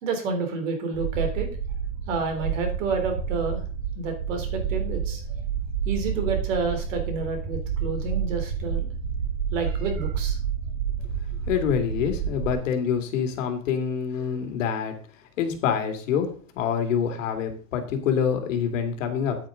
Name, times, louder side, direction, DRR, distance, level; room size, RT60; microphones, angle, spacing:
voice 1, 0.0-1.5 2.1-3.6 3.9-5.2 5.8-8.9 9.5-10.4 14.3-14.4, right 4 dB, 70° right, 4 dB, 3.3 m, -29 dB
sound 1, 0.9-12.5, right 7 dB, 45° right, 3.6 m, -29 dB
voice 2, 11.5-14.9 15.4-19.4, left 7 dB, 70° left, 6 dB, 2.3 m, -26 dB
8.9 x 8.9 x 3.8 m, 0.43 s
supercardioid pair, 160°, 40 cm